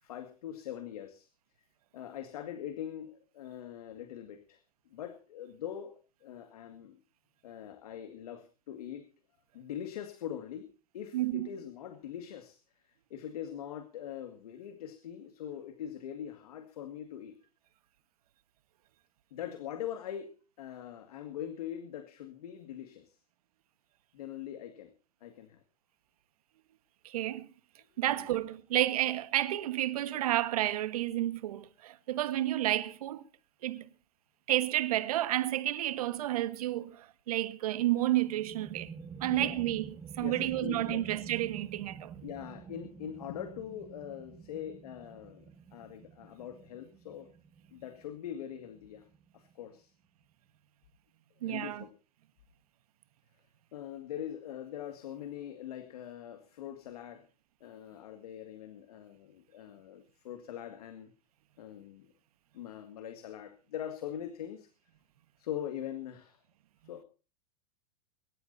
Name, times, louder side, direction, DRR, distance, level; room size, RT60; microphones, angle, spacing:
voice 1, 0.0-1.3 1.9-4.6 4.9-7.0 7.4-9.0 9.5-10.7 10.9-12.6 13.1-17.4 19.3-23.2 24.1-24.9 25.2-25.6 27.9-28.3 39.3-39.6 40.2-41.0 42.2-45.5 45.7-47.3 47.7-49.1 49.3-49.9 51.4-51.9 53.7-57.2 57.6-61.1 61.6-62.1 62.5-64.7 65.4-66.4 66.8-67.0, left 10 dB, 80° left, 2.2 m, -42 dB
voice 2, 11.1-11.5 27.0-27.5 28.0-33.3 33.6-33.9 34.5-38.9 39.2-42.2 51.4-51.8, right 14 dB, 75° right, 1.4 m, -31 dB
sound 1, 38.2-49.5, right 6 dB, 20° right, 1.9 m, -48 dB
23.5 x 13.0 x 2.8 m
hypercardioid pair, 125°, 19 cm